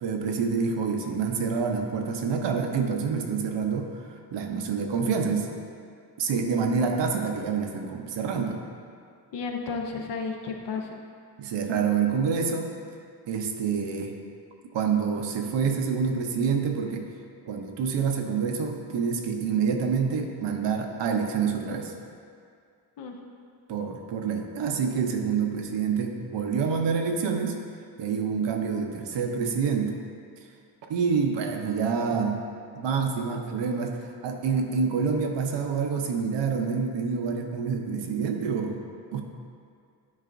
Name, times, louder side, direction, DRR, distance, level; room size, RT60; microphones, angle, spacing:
voice 1, 0.0-5.5 6.2-8.6 11.4-12.7 13.3-14.2 14.7-17.0 17.5-21.9 23.7-27.6 28.0-29.9 30.9-32.4 32.8-38.8 39.1-39.2, right 5 dB, 75° right, 3 dB, 0.8 m, -27 dB
voice 2, 9.3-10.9 23.0-23.2, left 4 dB, 70° left, 2 dB, 0.8 m, -32 dB
9.7 x 4.7 x 2.6 m, 2.3 s
wide cardioid pair, 155°, 43 cm